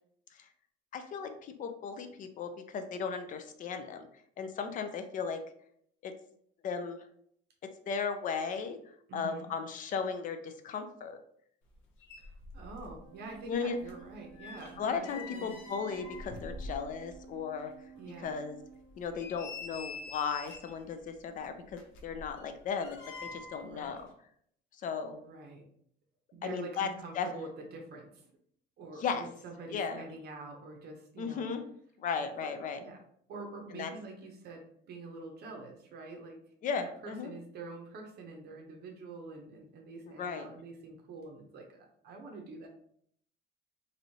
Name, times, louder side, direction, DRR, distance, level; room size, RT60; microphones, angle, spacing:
voice 1, 0.9-4.1 4.4-5.4 6.0-6.1 6.6-7.0 7.6-11.2 13.5-13.8 14.8-17.7 18.2-18.6 19.0-24.1 24.8-25.2 26.4-26.9 27.1-27.3 29.0-29.3 29.7-30.0 31.2-31.6 32.0-32.8 33.7-33.9 36.6-37.3 40.2-40.5, left 6 dB, 40° left, 8 dB, 0.4 m, -36 dB
voice 2, 9.1-9.5 12.2-15.5 15.9-16.0 17.9-18.5 23.5-24.1 25.1-25.7 26.3-28.2 28.8-31.5 32.2-33.0 33.3-36.4 36.8-42.7, right 3 dB, 55° right, 2 dB, 0.6 m, -46 dB
sound 1, 11.7-11.8 12.0-13.0 13.3-17.2 17.6-17.7 18.2-18.3 18.9-20.8 21.7-23.7 24.0-24.1, left 3 dB, 80° left, 0.7 m, -46 dB
Organ, 13.0-19.5, right 6 dB, 15° right, 0.7 m, -54 dB
3.1 x 2.6 x 2.6 m, 0.67 s
cardioid pair, 130°, 20 cm